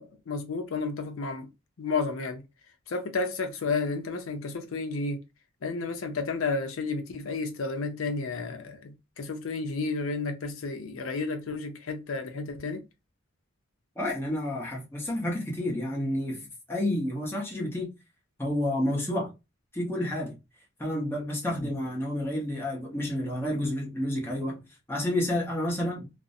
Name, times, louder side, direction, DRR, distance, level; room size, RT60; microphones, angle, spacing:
voice 1, 0.0-1.5 1.8-2.4 2.9-5.2 5.6-12.8, left 4 dB, 80° left, 0.5 m, -32 dB
voice 2, 14.0-17.9 18.4-19.3 19.7-20.4 20.8-24.6 24.9-26.1, left 1 dB, 10° left, 0.7 m, -30 dB
2.4 x 2.0 x 2.5 m
head